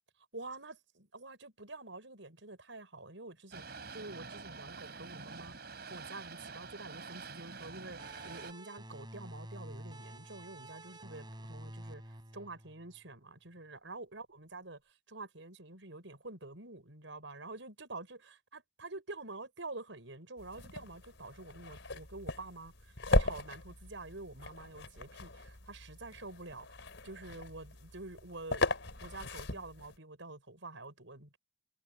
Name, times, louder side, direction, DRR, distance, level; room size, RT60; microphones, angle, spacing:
voice 1, 0.3-3.6 3.9-5.5 5.9-12.0 12.3-14.8 15.1-22.7 23.1-26.7 27.0-28.6 29.0-31.4, right 2 dB, 85° right, 5.6 m, -47 dB
Boat Water vehicle, 3.5-8.5, right 4 dB, 60° right, 4.4 m, -47 dB
sound 1, 8.0-13.3, right 1 dB, 25° right, 6.3 m, -49 dB
sound 2, 20.4-30.0, left 2 dB, 80° left, 3.9 m, -37 dB
head